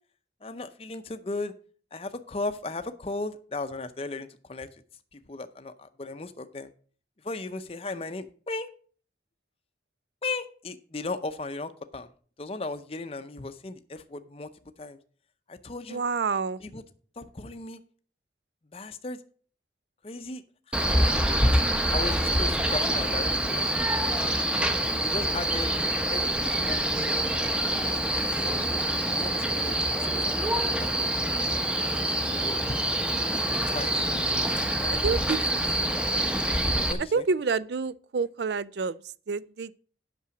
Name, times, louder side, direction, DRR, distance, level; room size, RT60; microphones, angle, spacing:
voice 1, 0.4-1.5 1.9-4.7 5.1-6.7 7.2-8.7 10.2-12.1 12.4-14.5 14.8-15.0 15.5-16.0 16.6-16.8 17.2-17.8 18.7-19.2 20.0-20.4 20.7-20.8 21.9-23.7 25.0-25.7 26.1-27.5 27.8-28.0 28.4-28.5 29.1-31.1 31.9-32.8 33.7-34.0 34.8-35.4 36.9-37.2, left 3 dB, 30° left, 0.6 m, -36 dB
voice 2, 15.9-16.6 34.9-35.4 37.1-39.0 39.3-39.7, right 5 dB, 65° right, 0.4 m, -28 dB
Male speech man speaking, 20.7-36.9, right 1 dB, 5° right, 0.8 m, -26 dB
8.4 x 6.1 x 5.9 m
head